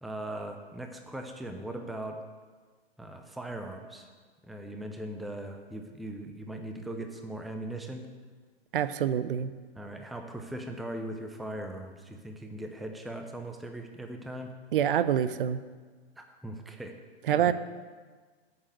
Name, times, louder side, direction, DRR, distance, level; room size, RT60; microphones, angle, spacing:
voice 1, 0.0-2.2 3.0-4.1 4.4-8.1 9.8-14.5 16.2-17.0 17.3-17.5, right 1 dB, ahead, 5 dB, 0.5 m, -39 dB
voice 2, 8.7-9.5 14.7-15.6 17.2-17.5, right 9 dB, 55° right, 13 dB, 0.6 m, -26 dB
8.7 x 6.7 x 8.1 m, 1.5 s
figure-of-eight pair, 110°, 31 cm